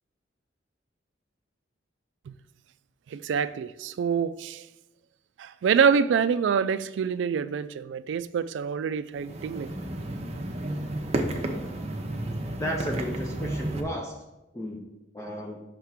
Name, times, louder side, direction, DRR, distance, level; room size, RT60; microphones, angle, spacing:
voice 1, 3.1-4.7 5.4-9.7, right 6 dB, 75° right, 0.3 m, -26 dB
sound 1, 9.2-13.8, right 1 dB, 35° right, 0.6 m, -32 dB
voice 2, 12.6-14.1 14.5-14.9 15.1-15.6, equal, 15° left, 0.6 m, -33 dB
5.6 x 3.6 x 5.6 m
head